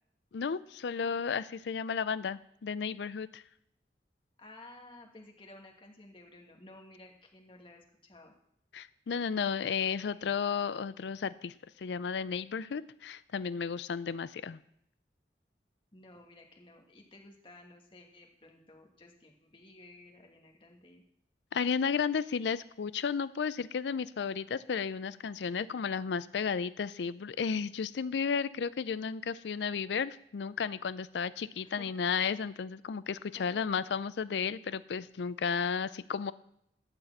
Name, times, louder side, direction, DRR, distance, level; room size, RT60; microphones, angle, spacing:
voice 1, 0.3-3.4 8.7-14.6 21.5-36.3, left 6 dB, 80° left, 16 dB, 0.4 m, -33 dB
voice 2, 4.4-8.3 15.9-21.0 31.6-31.9 33.3-33.6, left 2 dB, 30° left, 2 dB, 1.3 m, -54 dB
11.5 x 4.1 x 7.8 m, 0.74 s
head